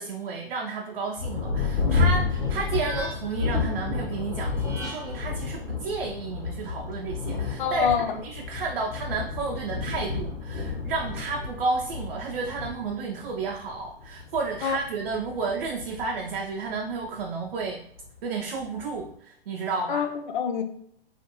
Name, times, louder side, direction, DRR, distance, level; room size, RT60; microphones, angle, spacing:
voice 1, 0.0-17.8 18.2-20.1, right 4 dB, 60° right, 0 dB, 0.5 m, -32 dB
Thunder, 1.2-17.2 18.0-18.1 18.6-19.1, left 4 dB, 85° left, 1.0 m, -31 dB
sound 1, 2.3-3.5 4.5-5.3, equal, 10° right, 0.4 m, -40 dB
voice 2, 7.6-8.1 14.6-14.8 19.9-20.6, left 7 dB, 55° left, 6 dB, 0.5 m, -25 dB
2.5 x 2.5 x 2.8 m, 0.66 s
figure-of-eight pair, 115°, 29 cm